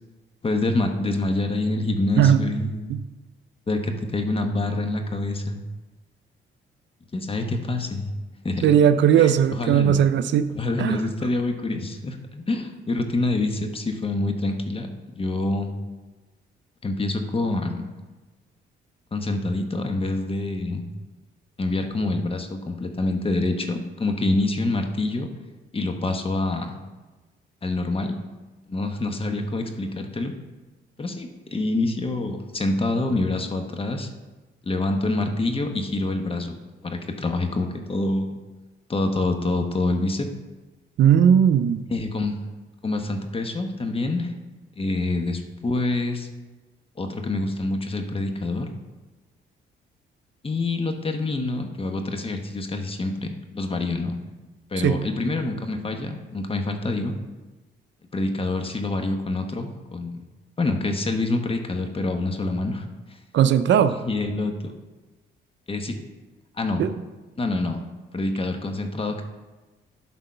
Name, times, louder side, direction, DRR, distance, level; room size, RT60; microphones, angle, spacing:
voice 1, 0.4-2.9 3.7-5.6 7.1-8.1 8.4-8.6 9.2-10.0 10.5-14.9 15.2-15.7 16.8-17.8 19.1-20.8 21.6-25.3 25.7-26.7 27.6-28.2 28.7-30.3 31.0-34.1 34.6-36.6 36.8-38.3 38.9-40.3 41.9-42.5 42.8-44.3 44.8-46.3 47.0-48.8 50.4-54.2 54.7-57.1 58.1-60.2 60.6-62.9 64.0-64.7 65.7-66.0 66.6-66.8 67.4-67.8 68.1-69.2, left 2 dB, 30° left, 5 dB, 1.2 m, -26 dB
voice 2, 8.6-10.5 10.8-11.1 41.0-41.8 54.8-55.0 63.3-64.0 66.8-66.9, right 9 dB, 65° right, 11 dB, 0.5 m, -18 dB
11.5 x 4.0 x 5.7 m, 1.2 s
cardioid pair, 90°, 20 cm